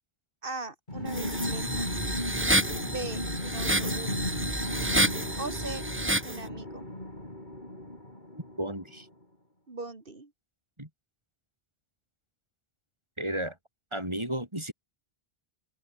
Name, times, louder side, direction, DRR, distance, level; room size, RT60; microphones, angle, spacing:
voice 1, 0.4-2.0 2.8-4.3 5.4-5.8 6.2-6.9 9.7-10.3, right 3 dB, 60° right, 2.6 m, -40 dB
sound 1, 0.9-9.0, left 1 dB, 50° left, 6.6 m, -36 dB
sound 2, 1.1-6.4, right 1 dB, 10° right, 1.8 m, -29 dB
voice 2, 8.6-9.1 10.8-10.9 13.2-13.6 13.9-14.7, right 1 dB, 25° right, 7.4 m, -33 dB
open air
omnidirectional pair, 1.0 m